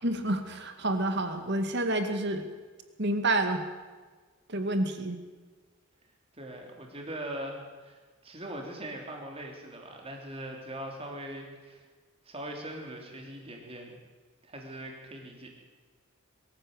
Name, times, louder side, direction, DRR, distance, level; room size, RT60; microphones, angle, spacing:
voice 1, 0.0-2.5 3.0-3.7 4.5-5.2, right 1 dB, 50° right, 7 dB, 2.1 m, -29 dB
voice 2, 6.3-11.8 12.2-14.0 14.4-15.5, right 1 dB, 25° right, 1 dB, 3.4 m, -41 dB
23.0 x 14.0 x 7.9 m, 1.4 s
head